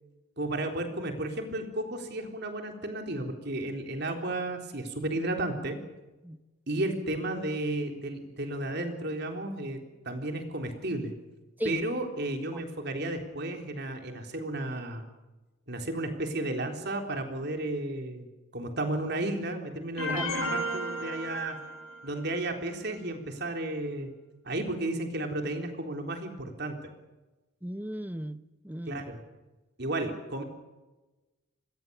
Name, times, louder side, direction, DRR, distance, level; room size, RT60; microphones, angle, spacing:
voice 1, 0.4-5.8 6.7-9.8 10.0-11.1 11.6-15.0 15.7-18.3 18.5-21.6 22.0-24.1 24.4-26.9 28.9-29.2 29.8-30.4, right 1 dB, 50° right, 4 dB, 3.8 m, -33 dB
sound 1, 20.0-22.1, equal, 85° left, 6.7 m, -33 dB
voice 2, 27.6-29.0, equal, 10° right, 12 dB, 0.9 m, -36 dB
26.5 x 21.0 x 7.1 m, 1.1 s
head